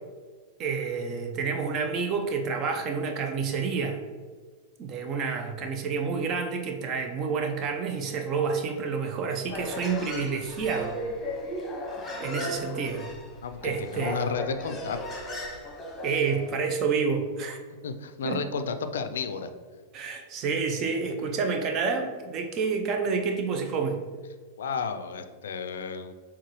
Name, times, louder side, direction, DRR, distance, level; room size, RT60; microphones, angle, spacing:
voice 1, 0.6-4.0 4.8-11.0 12.2-13.1 13.6-14.4 16.0-17.6 18.2-18.4 19.9-24.0, right 5 dB, 40° right, 4 dB, 0.6 m, -29 dB
Human voice, 9.4-16.5, left 1 dB, 20° left, 1.1 m, -36 dB
voice 2, 13.4-15.2 17.8-19.5 24.6-26.1, left 5 dB, 70° left, 9 dB, 0.3 m, -32 dB
4.6 x 3.6 x 3.0 m, 1.5 s
figure-of-eight pair, 95°, 0 cm